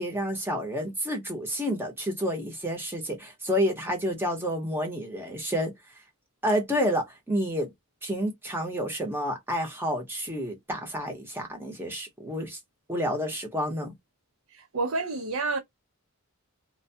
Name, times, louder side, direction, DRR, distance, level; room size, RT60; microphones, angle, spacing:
voice 1, 0.0-5.7 6.4-7.7 8.0-12.6 12.9-13.9, equal, 10° right, 0.9 m, -29 dB
voice 2, 14.5-15.6, right 3 dB, 70° right, 0.6 m, -29 dB
2.2 x 2.2 x 2.6 m
head